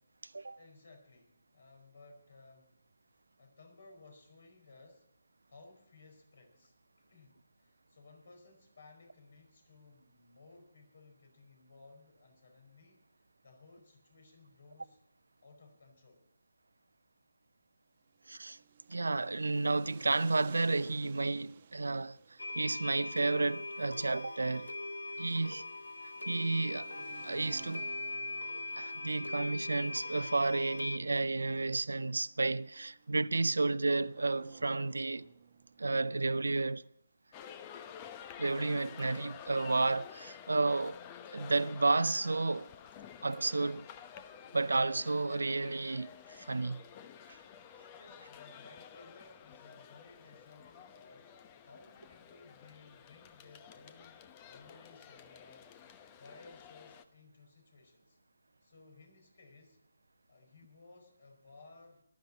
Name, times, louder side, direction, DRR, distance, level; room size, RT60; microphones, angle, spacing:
voice 1, 0.6-2.8 3.1-5.1 5.5-15.0 15.4-16.3 47.9-51.4 51.6-55.8 56.2-58.2 58.6-59.8 60.3-62.0, left 3 dB, 60° left, 4.7 m, -58 dB
sound 1, 18.2-36.1, right 7 dB, 40° right, 1.0 m, -57 dB
voice 2, 18.3-18.6 18.9-22.2 22.5-24.7 25.2-25.6 26.3-26.9 27.2-27.9 28.8-35.3 35.8-36.8 38.4-41.0 41.3-42.7 43.2-43.9 44.5-46.8 47.3-47.4, right 3 dB, 70° right, 0.5 m, -32 dB
sound 2, 22.4-31.0, left 2 dB, 80° left, 1.0 m, -41 dB
sound 3, 37.3-57.0, left 8 dB, 25° left, 0.9 m, -51 dB
20.0 x 12.0 x 4.1 m
figure-of-eight pair, 145°, 0 cm